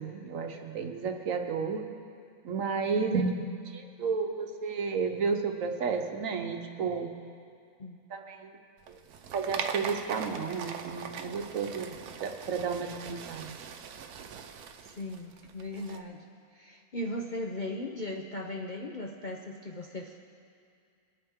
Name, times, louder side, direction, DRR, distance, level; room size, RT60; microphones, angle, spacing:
voice 1, 0.0-1.9 2.4-3.3 3.7-7.1 8.1-8.5 8.9-9.0 9.3-11.9 12.2-13.6, right 5 dB, 65° right, 5 dB, 1.2 m, -32 dB
sound 1, 8.8-16.0, right 7 dB, 80° right, 1.2 m, -41 dB
voice 2, 14.8-16.2 16.5-20.2, left 1 dB, 45° left, 0 dB, 0.6 m, -38 dB
22.0 x 8.8 x 3.6 m, 2.4 s
omnidirectional pair, 1.6 m